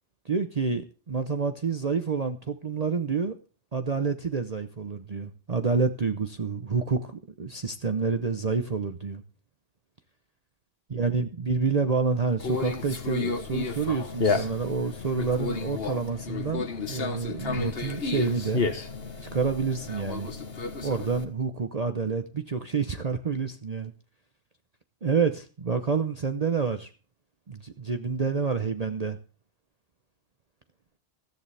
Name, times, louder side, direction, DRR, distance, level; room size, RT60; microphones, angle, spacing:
voice 1, 0.3-3.3 3.7-9.2 10.9-18.6 19.2-20.3 20.8-23.9 25.0-26.9 27.5-29.2, right 5 dB, 40° right, 0.9 m, -28 dB
Conversation, 12.4-21.2, left 4 dB, 60° left, 1.6 m, -32 dB
14.5 x 13.5 x 3.4 m
omnidirectional pair, 1.2 m